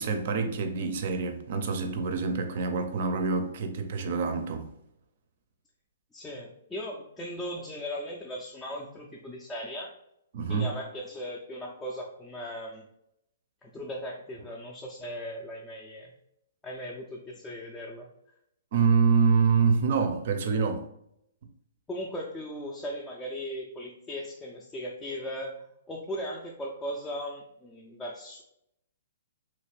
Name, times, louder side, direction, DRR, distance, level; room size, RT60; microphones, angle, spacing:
voice 1, 0.0-4.7 10.3-10.7 18.7-20.8, right 5 dB, 55° right, 0.5 m, -26 dB
voice 2, 6.1-10.0 10.5-12.9 13.6-16.1 16.6-18.1 21.9-25.5 25.9-28.4, equal, 10° left, 0.4 m, -38 dB
3.1 x 2.5 x 3.3 m
hypercardioid pair, 150°, 0 cm